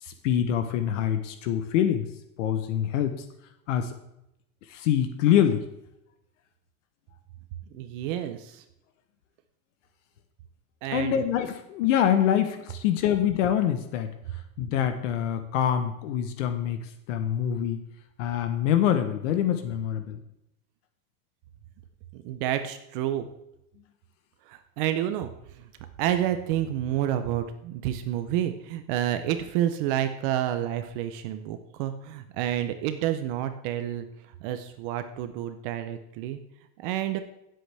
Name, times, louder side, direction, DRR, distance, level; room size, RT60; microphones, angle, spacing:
voice 1, 0.0-2.1 2.4-3.3 3.7-3.9 4.6-5.6 10.9-17.8 18.2-20.2, left 10 dB, 60° left, 8 dB, 1.0 m, -25 dB
voice 2, 7.7-8.6 10.8-11.2 22.1-23.3 24.5-25.7 26.0-36.4 36.8-37.2, right 11 dB, 40° right, 9 dB, 0.7 m, -29 dB
16.0 x 7.9 x 3.4 m, 0.84 s
supercardioid pair, 170°, 42 cm